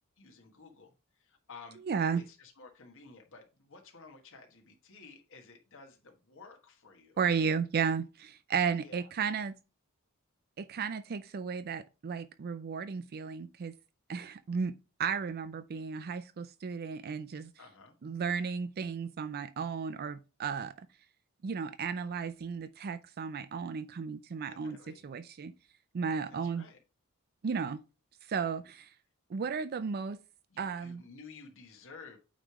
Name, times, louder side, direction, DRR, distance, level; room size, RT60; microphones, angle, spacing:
voice 1, 0.2-0.9 1.2-1.8 2.1-7.2 8.8-9.1 17.6-17.9 24.5-25.0 26.3-26.8 30.5-32.2, left 4 dB, 60° left, 1.3 m, -53 dB
voice 2, 1.9-2.2 7.2-9.5 10.6-13.7 14.1-14.7 15.0-17.5 18.0-20.7 21.4-25.5 25.9-26.6 27.4-27.8 28.3-28.9 29.3-30.2 30.6-31.0, right 6 dB, 45° right, 0.4 m, -34 dB
8.9 x 3.2 x 4.7 m
head